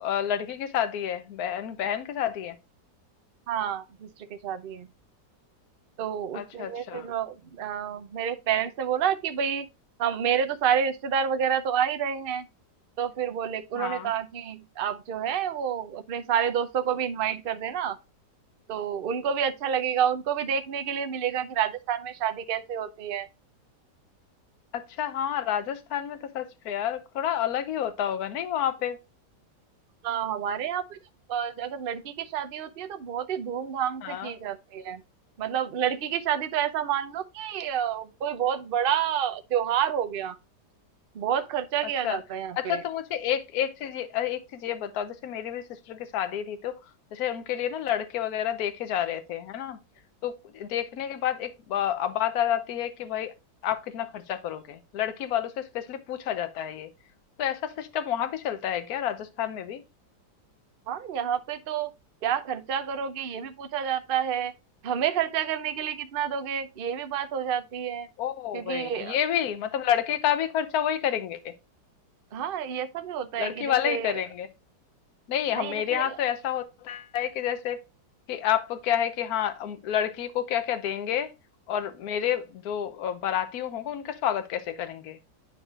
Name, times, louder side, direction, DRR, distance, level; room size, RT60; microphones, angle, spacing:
voice 1, 0.0-2.5 6.3-7.1 13.8-14.1 24.7-29.0 34.0-34.3 42.0-42.2 42.6-46.8 47.1-49.8 50.2-53.3 53.6-56.9 57.4-59.8 68.2-71.5 73.4-74.5 75.3-77.8 78.3-81.3 81.7-85.2, left 10 dB, 65° left, 1.2 m, -29 dB
voice 2, 3.5-4.9 6.0-9.7 10.0-12.5 13.0-18.0 18.7-23.3 30.0-31.0 31.3-35.0 35.4-40.4 41.1-42.8 60.9-61.9 62.2-64.5 64.8-68.1 68.5-69.2 72.3-74.1 75.5-76.2, right 8 dB, 60° right, 0.6 m, -29 dB
9.9 x 4.8 x 2.4 m
omnidirectional pair, 1.9 m